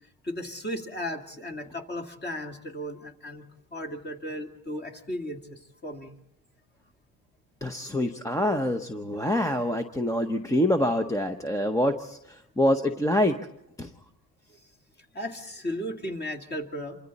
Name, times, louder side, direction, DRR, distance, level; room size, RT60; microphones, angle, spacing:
voice 1, 0.2-6.2 14.5-14.7 15.1-17.0, equal, 25° left, 3 dB, 2.2 m, -35 dB
voice 2, 7.6-12.2 12.6-13.4 13.8-13.9, left 1 dB, 10° left, 6 dB, 0.8 m, -25 dB
27.0 x 24.5 x 4.1 m, 0.80 s
cardioid pair, 125°, 38 cm